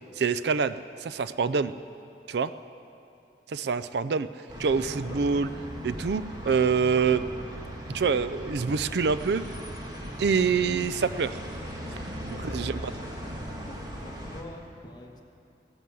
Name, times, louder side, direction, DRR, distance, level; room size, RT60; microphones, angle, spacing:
voice 1, 0.2-1.7 2.3-2.5 3.5-4.3 4.6-5.5 5.8-7.2 7.9-9.4 10.2-11.4 12.0-12.7, right 5 dB, 70° right, 14 dB, 0.4 m, -26 dB
sound 1, 4.5-14.4, equal, 25° right, 1.7 m, -38 dB
voice 2, 12.1-13.2 13.6-15.2, left 1 dB, 25° left, 1 dB, 1.4 m, -46 dB
16.5 x 11.0 x 7.6 m, 2.6 s
head